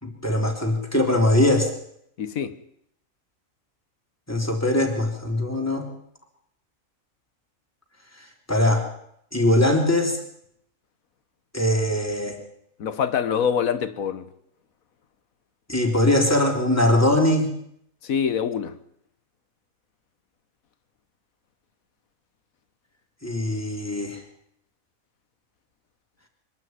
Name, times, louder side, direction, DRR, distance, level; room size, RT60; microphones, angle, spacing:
voice 1, 0.0-1.7 4.3-5.9 8.5-8.9 9.3-10.2 11.5-12.4 15.7-17.5 23.2-24.2, left 1 dB, 10° left, 3.7 m, -21 dB
voice 2, 2.2-2.6 12.8-14.3 18.0-18.8, left 7 dB, 90° left, 1.6 m, -25 dB
24.0 x 12.5 x 9.5 m
omnidirectional pair, 1.4 m